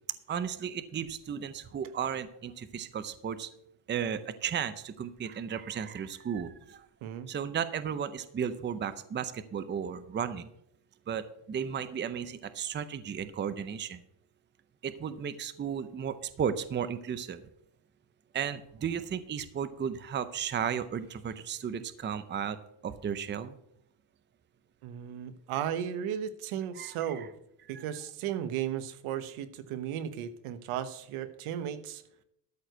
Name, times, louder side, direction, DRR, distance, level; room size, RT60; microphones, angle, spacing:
voice 1, 0.3-3.5 3.9-6.9 7.3-10.5 11.1-14.0 14.8-17.4 18.3-22.6 22.8-23.6 26.7-27.3 27.7-27.9, right 8 dB, 25° right, 13 dB, 0.6 m, -34 dB
voice 2, 24.8-27.3 27.7-32.0, right 9 dB, 85° right, 12 dB, 1.2 m, -35 dB
13.0 x 4.7 x 7.8 m, 0.75 s
cardioid pair, 140°, 49 cm